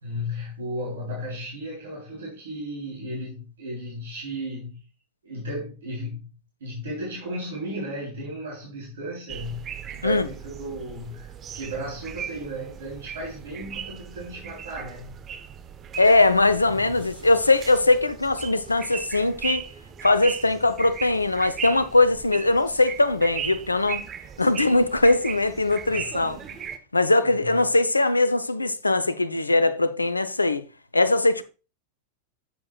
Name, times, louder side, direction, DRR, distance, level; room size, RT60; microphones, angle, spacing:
voice 1, 0.0-4.8 5.2-6.3 6.6-9.6 9.9-15.2 16.7-17.1 25.9-26.0 26.4-26.5 27.2-27.5, equal, 65° right, 3.3 m, -35 dB
sound 1, 9.3-26.8, right 8 dB, 25° right, 0.8 m, -38 dB
voice 2, 16.0-19.6 20.0-24.0 24.4-26.4 26.9-30.6 30.9-31.4, left 2 dB, 80° left, 0.6 m, -21 dB
9.6 x 7.5 x 2.4 m
figure-of-eight pair, 90°, 0 cm